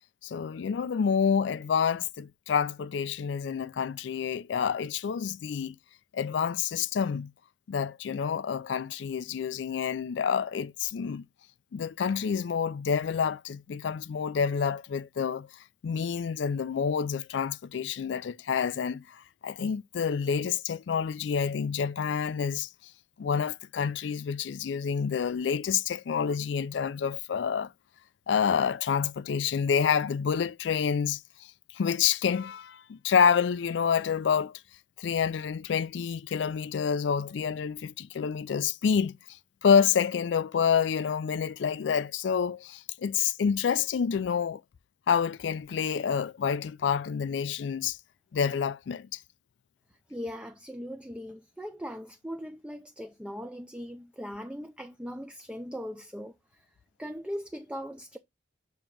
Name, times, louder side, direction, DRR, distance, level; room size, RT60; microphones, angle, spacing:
voice 1, 0.2-5.8 6.1-7.3 7.7-11.2 11.7-15.5 15.8-22.7 23.2-27.7 28.3-34.6 35.0-39.2 39.6-44.6 45.1-48.0 48.3-49.2, left 7 dB, 75° left, 0.4 m, -28 dB
voice 2, 50.1-56.7 57.0-58.2, equal, 5° right, 0.5 m, -39 dB
7.0 x 2.9 x 5.1 m
head